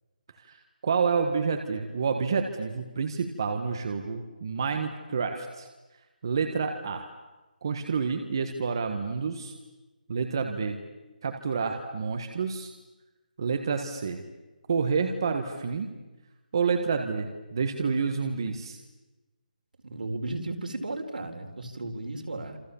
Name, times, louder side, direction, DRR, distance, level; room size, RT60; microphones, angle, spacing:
voice 1, 0.8-5.7 6.2-7.0 7.6-9.5 10.1-10.8 11.2-12.7 13.4-14.2 14.7-15.9 16.5-18.8, right 5 dB, 30° right, 5 dB, 1.6 m, -29 dB
voice 2, 19.8-22.6, right 2 dB, 65° right, 4 dB, 4.6 m, -34 dB
29.0 x 28.0 x 7.2 m, 1.1 s
hypercardioid pair, 175°, 5 cm